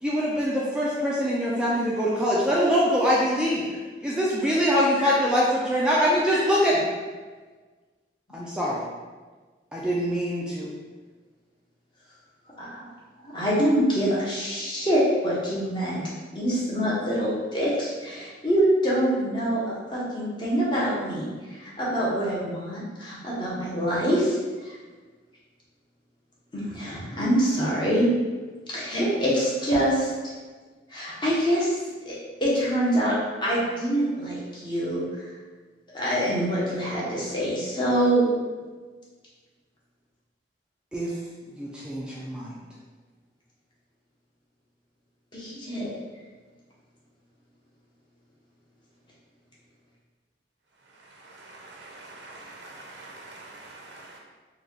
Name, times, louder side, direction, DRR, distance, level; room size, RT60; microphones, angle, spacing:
voice 1, 0.0-3.6 4.0-6.8 8.3-8.8 9.7-10.7 40.9-41.1 41.6-42.6, equal, 5° right, -6 dB, 0.4 m, -23 dB
voice 2, 13.2-16.0 16.3-24.4 24.6-24.7 26.5-28.1 28.7-30.3 30.9-31.8 32.1-35.2 35.9-38.4 45.3-45.9, right 1 dB, 25° left, -6 dB, 0.9 m, -25 dB
voice 3, 51.1-54.2, right 2 dB, 75° right, -1 dB, 0.5 m, -45 dB
3.8 x 2.3 x 3.1 m, 1.4 s
head